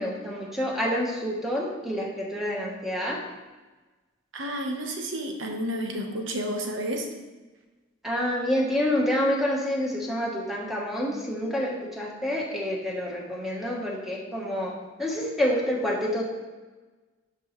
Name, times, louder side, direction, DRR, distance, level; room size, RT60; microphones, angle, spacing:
voice 1, 0.0-3.2 8.0-14.7 15.0-16.2, equal, ahead, -3 dB, 1.3 m, -28 dB
voice 2, 4.3-7.1, equal, 80° right, 3 dB, 1.1 m, -31 dB
11.0 x 5.4 x 3.2 m, 1.2 s
head